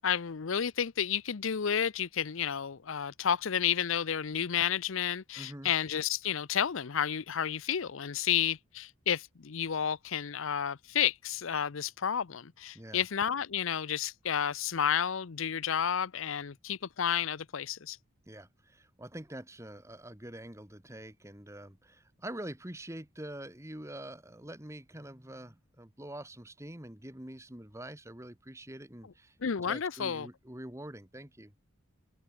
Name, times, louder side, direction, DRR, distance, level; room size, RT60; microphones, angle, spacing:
voice 1, 0.0-18.0 29.4-30.3, left 8 dB, 75° left, 0.6 m, -31 dB
voice 2, 5.4-5.7 12.7-13.1 18.3-29.4 29.7-31.5, right 1 dB, 15° right, 1.9 m, -45 dB
head